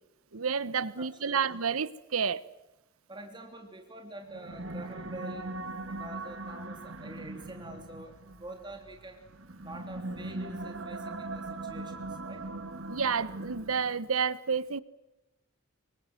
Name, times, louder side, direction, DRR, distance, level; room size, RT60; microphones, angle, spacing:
voice 1, 0.3-2.4 12.9-14.8, right 6 dB, 85° right, 1.1 m, -30 dB
voice 2, 1.0-1.4 3.1-5.5 5.9-9.3 9.6-12.4, right 2 dB, 20° right, 3.2 m, -46 dB
sound 1, 4.2-14.1, right 2 dB, 65° right, 2.2 m, -40 dB
27.0 x 24.0 x 7.8 m
head